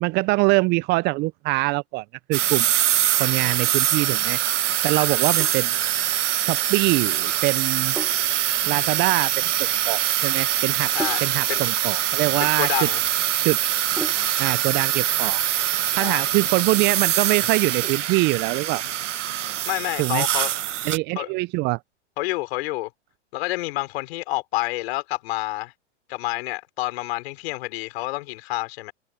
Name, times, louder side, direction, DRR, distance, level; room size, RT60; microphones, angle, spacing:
voice 1, 0.0-2.7 3.2-4.4 4.8-5.7 6.5-7.9 8.7-9.3 9.9-10.9 11.2-12.9 13.4-13.6 14.4-15.4 16.0-18.8 20.0-20.2 20.9-21.8, right 24 dB, 30° right, 0.5 m, -23 dB
sound 1, 2.3-21.0, right 11 dB, 75° right, 1.2 m, -23 dB
Sink (filling or washing), 5.4-14.5, right 3 dB, 5° right, 1.2 m, -40 dB
voice 2, 12.4-13.0 16.0-16.3 19.6-20.5 21.2-21.3 22.2-22.9 23.3-25.7 26.1-28.9, left 20 dB, 55° left, 4.4 m, -28 dB
hypercardioid pair, 110°, 37 cm